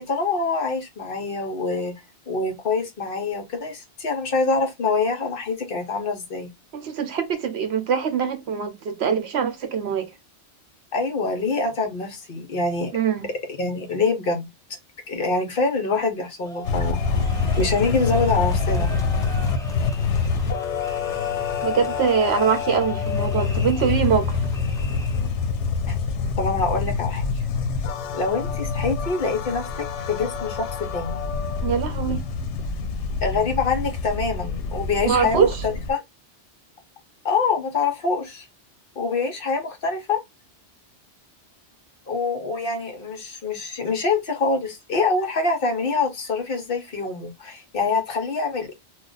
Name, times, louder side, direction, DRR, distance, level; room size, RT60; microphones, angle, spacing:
voice 1, 0.0-1.9 2.3-6.5 10.9-12.9 13.6-14.5 15.1-17.0 17.6-18.9 25.9-26.0 26.4-27.2 28.1-31.2 33.2-36.0 37.2-38.5 39.0-40.2 42.1-48.7, left 4 dB, 55° left, 0.9 m, -25 dB
voice 2, 6.7-10.1 12.9-13.2 21.6-24.4 31.6-32.2 35.1-35.5, right 7 dB, 70° right, 0.9 m, -23 dB
sound 1, 16.4-25.4, equal, 5° left, 0.3 m, -40 dB
sound 2, 16.6-35.9, left 5 dB, 85° left, 0.9 m, -26 dB
2.4 x 2.2 x 3.7 m
omnidirectional pair, 1.2 m